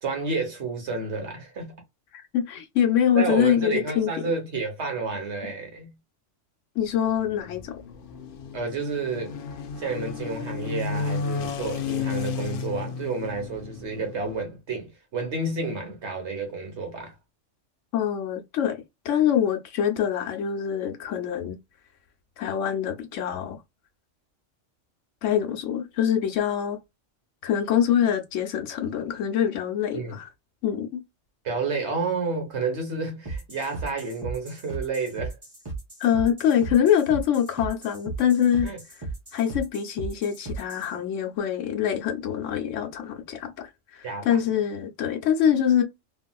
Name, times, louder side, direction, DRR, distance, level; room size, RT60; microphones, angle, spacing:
voice 1, 0.0-1.8 3.1-5.9 8.5-9.4 9.8-17.1 29.9-30.2 31.4-35.4 38.6-38.8 44.0-44.4, right 4 dB, 65° right, 1.4 m, -30 dB
voice 2, 2.1-4.1 5.4-5.5 6.8-7.7 17.9-21.6 22.4-23.6 25.2-26.8 27.4-30.3 30.6-31.0 36.0-38.7 39.3-45.8, left 9 dB, 80° left, 1.0 m, -24 dB
sound 1, 6.8-14.4, left 5 dB, 60° left, 0.6 m, -33 dB
sound 2, 33.2-40.9, right 3 dB, 20° right, 0.9 m, -36 dB
3.3 x 2.4 x 2.3 m
omnidirectional pair, 1.3 m